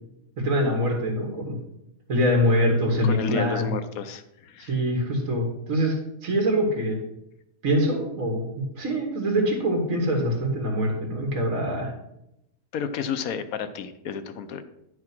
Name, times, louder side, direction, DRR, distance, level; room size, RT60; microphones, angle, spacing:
voice 1, 0.4-1.5 2.1-3.7 4.6-6.0 6.2-7.0 7.6-11.9, equal, 65° right, 1 dB, 2.3 m, -24 dB
voice 2, 3.0-4.7 12.7-14.6, left 7 dB, 75° left, 9 dB, 1.2 m, -31 dB
11.0 x 4.8 x 6.0 m, 0.84 s
omnidirectional pair, 1.5 m